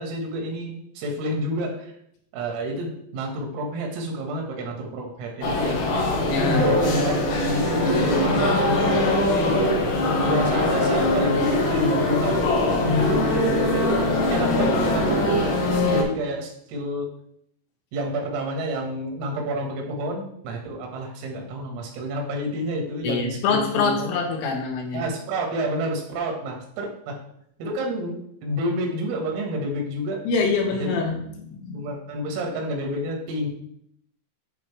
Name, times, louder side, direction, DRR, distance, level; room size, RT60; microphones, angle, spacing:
voice 1, 0.0-1.9 2.3-5.8 6.3-9.0 9.4-9.9 10.2-13.3 13.7-17.1 17.9-24.1 24.9-27.2 27.6-30.2 30.8-31.0 31.7-33.5, equal, 90° right, 1 dB, 4.2 m, -29 dB
sound 1, 5.4-16.0, left 1 dB, 65° left, 2.7 m, -22 dB
voice 2, 6.3-6.7 23.0-25.1 30.3-31.9, left 5 dB, 80° left, 1 dB, 3.8 m, -25 dB
12.0 x 4.5 x 3.4 m, 0.71 s
omnidirectional pair, 5.8 m